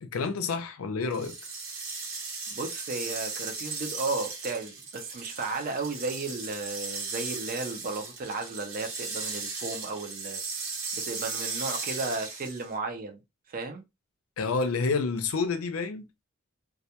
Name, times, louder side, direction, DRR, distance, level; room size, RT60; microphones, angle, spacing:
voice 1, 0.0-1.4 14.4-16.0, left 4 dB, 85° left, 0.5 m, -29 dB
sound 1, 1.1-12.7, right 4 dB, 75° right, 1.0 m, -37 dB
voice 2, 2.5-10.4 11.0-13.2 13.5-13.8, right 3 dB, 45° right, 0.5 m, -34 dB
2.3 x 2.2 x 2.8 m
head